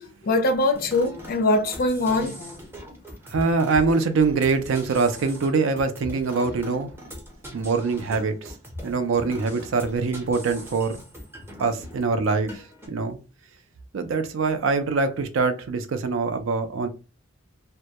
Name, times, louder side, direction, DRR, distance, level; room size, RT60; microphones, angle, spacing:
voice 1, 0.2-2.5, left 2 dB, 45° left, 0.4 m, -22 dB
sound 1, 0.7-12.9, equal, 10° right, 0.6 m, -41 dB
voice 2, 3.3-6.9 7.5-8.5 8.8-11.0 11.6-13.2 13.9-16.9, right 4 dB, 70° right, 0.4 m, -24 dB
2.2 x 2.1 x 2.7 m
head